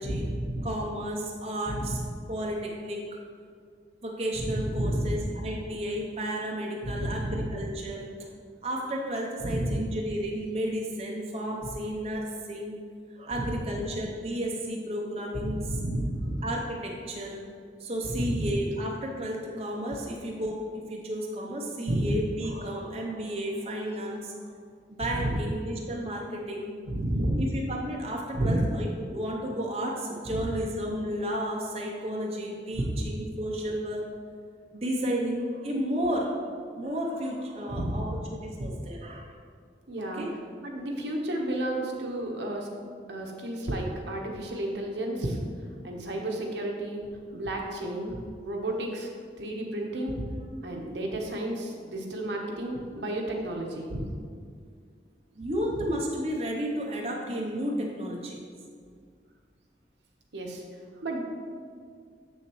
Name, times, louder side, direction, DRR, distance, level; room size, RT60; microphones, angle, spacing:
voice 1, 0.0-0.7 1.7-1.9 4.4-5.2 6.8-7.4 9.4-9.9 13.4-13.5 15.3-16.4 18.2-18.5 21.9-22.2 25.0-25.3 26.9-27.4 28.3-28.6 30.3-30.4 32.7-33.1 37.7-38.2 38.6-38.8 39.9-40.2 40.6-42.7 43.1-45.4 45.8-47.0 47.3-48.2 48.4-49.1 49.4-50.2 50.6-54.1 55.8-55.9 60.3-60.6 61.0-61.2, right 1 dB, 80° right, 0 dB, 1.0 m, -31 dB
voice 2, 0.6-2.0 2.3-3.0 4.0-8.1 8.6-12.7 13.2-15.7 16.4-17.4 17.8-24.4 24.9-26.7 27.4-28.9 29.1-34.0 34.7-36.4 36.8-38.0 38.3-39.3 40.0-40.3 55.3-58.4, equal, 35° right, -1 dB, 0.7 m, -32 dB
7.3 x 6.6 x 3.1 m, 2.1 s
head